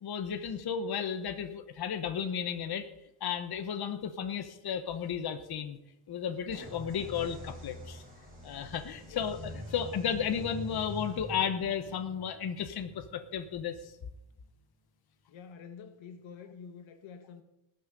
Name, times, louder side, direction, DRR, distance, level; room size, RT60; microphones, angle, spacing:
voice 1, 0.0-2.9 3.2-5.8 6.1-8.0 8.4-13.9, left 7 dB, 55° left, 1.1 m, -34 dB
sound 1, 6.5-14.1, left 1 dB, 20° right, 5.2 m, -45 dB
voice 2, 15.3-17.4, left 6 dB, 85° left, 1.5 m, -48 dB
19.5 x 6.5 x 5.3 m
cardioid pair, 110°, 46 cm